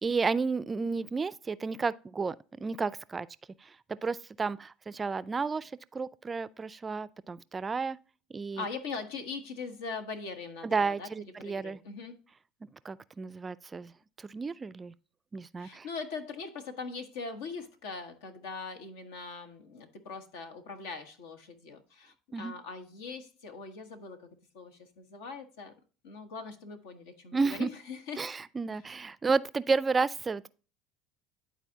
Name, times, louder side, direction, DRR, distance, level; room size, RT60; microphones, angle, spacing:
voice 1, 0.0-3.3 3.6-8.0 8.3-8.6 10.6-11.8 12.8-13.9 14.2-14.9 15.3-15.9 22.3-22.5 27.3-27.7 28.2-30.5, right 4 dB, 25° right, 0.4 m, -32 dB
voice 2, 8.5-11.1 11.4-12.2 15.6-25.7 26.0-28.2, left 4 dB, 80° left, 1.3 m, -41 dB
11.5 x 4.1 x 2.7 m
supercardioid pair, 90°, 0 cm